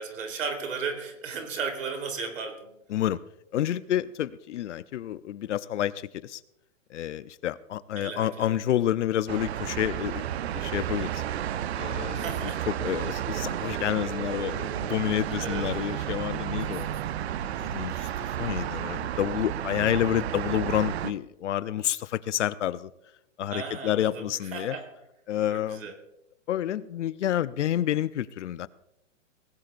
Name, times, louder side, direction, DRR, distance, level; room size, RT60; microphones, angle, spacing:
voice 1, 0.0-2.7 8.0-8.6 12.1-12.6 15.4-15.7 16.7-17.0 23.5-24.9 25.5-26.0, right 5 dB, 85° right, 3.7 m, -35 dB
voice 2, 2.9-3.2 3.5-6.4 6.9-10.2 10.5-11.2 11.8-16.9 17.5-18.1 18.4-22.9 23.4-24.8 25.3-25.9 26.5-28.7, left 12 dB, 65° left, 0.7 m, -29 dB
sound 1, 9.3-21.1, right 10 dB, 55° right, 0.7 m, -32 dB
19.5 x 17.0 x 2.6 m
hypercardioid pair, 170°, 38 cm